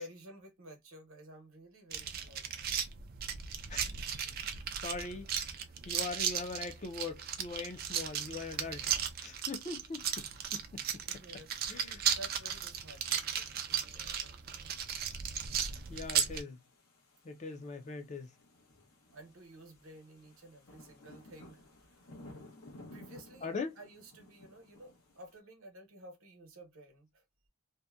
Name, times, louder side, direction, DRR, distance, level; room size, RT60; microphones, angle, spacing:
voice 1, 0.0-2.5 11.1-14.7 19.1-22.1 22.9-27.2, right 1 dB, 70° right, 0.9 m, -53 dB
sound 1, 1.9-16.4, right 8 dB, 45° right, 0.3 m, -36 dB
voice 2, 4.8-5.3 5.9-8.9 9.2-10.3 10.5-10.8 11.7-12.1 15.9-16.6 17.2-18.3 23.4-23.8, left 3 dB, 30° left, 0.4 m, -41 dB
sound 2, 15.4-25.4, left 1 dB, 85° left, 0.8 m, -56 dB
2.7 x 2.1 x 2.3 m
head